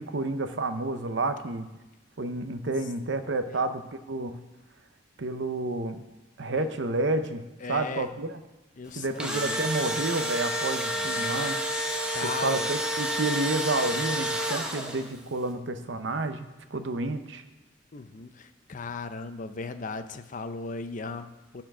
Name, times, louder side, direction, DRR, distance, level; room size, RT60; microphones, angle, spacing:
voice 1, 0.0-1.7 2.2-4.4 5.2-6.0 6.4-7.4 7.7-8.4 9.0-11.6 12.2-17.4, right 2 dB, 75° right, 9 dB, 0.7 m, -30 dB
voice 2, 7.6-8.1 8.8-9.6 10.9-11.5 12.1-12.7 17.9-21.6, left 4 dB, 45° left, 10 dB, 0.6 m, -37 dB
Engine / Drill, 8.9-15.2, equal, 5° right, 1.0 m, -30 dB
12.5 x 4.5 x 6.0 m, 1.0 s
head